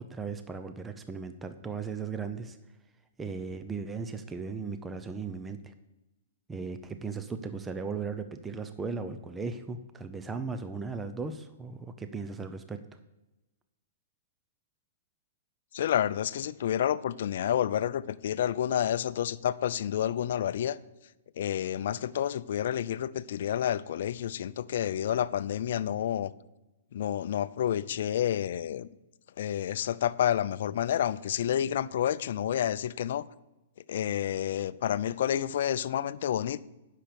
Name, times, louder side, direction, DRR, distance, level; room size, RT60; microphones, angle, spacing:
voice 1, 0.0-2.6 3.2-5.7 6.5-12.8, right 4 dB, 15° right, 0.7 m, -37 dB
voice 2, 15.7-20.8 21.4-26.3 26.9-28.9 29.4-33.2 33.9-36.6, left 10 dB, 65° left, 0.5 m, -29 dB
9.9 x 6.6 x 7.0 m
hypercardioid pair, 125°, 0 cm